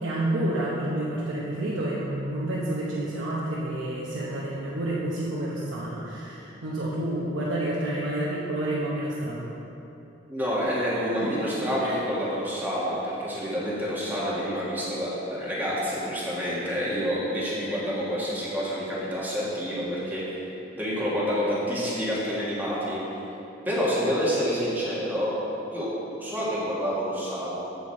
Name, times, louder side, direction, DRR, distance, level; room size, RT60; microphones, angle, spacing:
voice 1, 0.0-9.5 11.2-11.3 11.8-11.9, right 1 dB, 80° right, -6 dB, 1.0 m, -29 dB
voice 2, 10.3-20.2 20.8-23.0 23.7-25.4 25.7-27.5, equal, 10° right, -8 dB, 1.9 m, -28 dB
8.2 x 7.3 x 4.2 m, 3.0 s
head